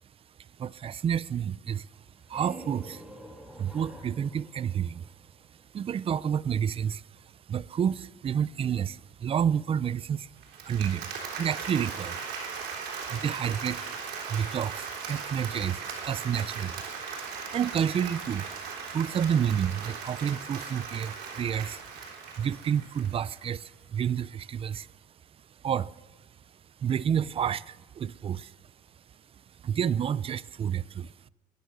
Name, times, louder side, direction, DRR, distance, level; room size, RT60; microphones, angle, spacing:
voice 1, 0.6-1.9 2.3-3.0 3.6-5.1 5.7-10.3 10.7-11.1 11.4-12.2 13.1-13.9 14.3-16.7 17.5-18.5 18.9-21.8 22.4-24.9 25.6-26.0 26.8-28.5 29.6-31.3, right 8 dB, 35° right, 0.4 m, -29 dB
sound 1, 1.9-5.6, right 1 dB, 5° right, 2.1 m, -47 dB
Applause, 10.4-23.4, right 5 dB, 75° right, 3.6 m, -38 dB
20.5 x 9.6 x 6.3 m
cardioid pair, 110°, 17 cm